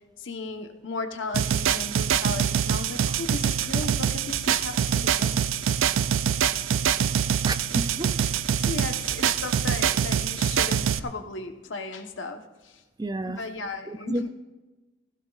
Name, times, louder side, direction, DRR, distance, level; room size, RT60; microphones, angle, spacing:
voice 1, 0.2-5.4 6.6-6.9 8.1-12.8 13.2-14.3, left 3 dB, 75° left, 1.1 m, -36 dB
sound 1, 1.3-11.0, right 8 dB, 90° right, 0.4 m, -24 dB
voice 2, 7.5-8.1 13.0-13.4 13.9-14.3, right 2 dB, 20° right, 0.4 m, -31 dB
16.0 x 16.0 x 2.4 m
head